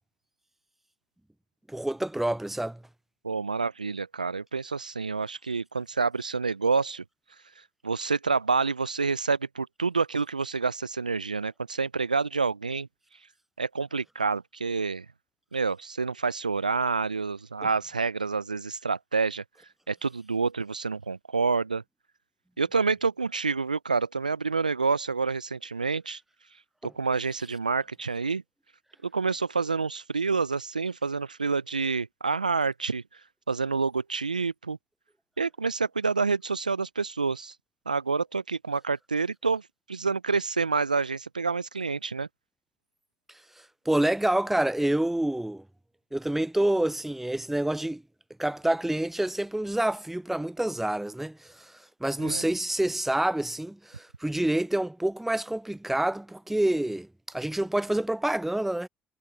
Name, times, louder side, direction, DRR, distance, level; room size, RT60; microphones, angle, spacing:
voice 1, 1.7-2.8 26.8-26.9 43.9-45.6 46.1-48.0 48.4-51.7 52.0-58.9, right 1 dB, 5° right, 0.5 m, -27 dB
voice 2, 3.2-7.0 7.8-12.9 13.6-15.1 15.5-19.4 19.9-21.8 22.6-26.2 26.8-28.4 29.0-33.0 33.5-34.8 35.4-37.5 37.9-39.6 39.9-42.3 52.2-52.4, right 4 dB, 90° right, 0.6 m, -28 dB
figure-of-eight pair, 50°, 4 cm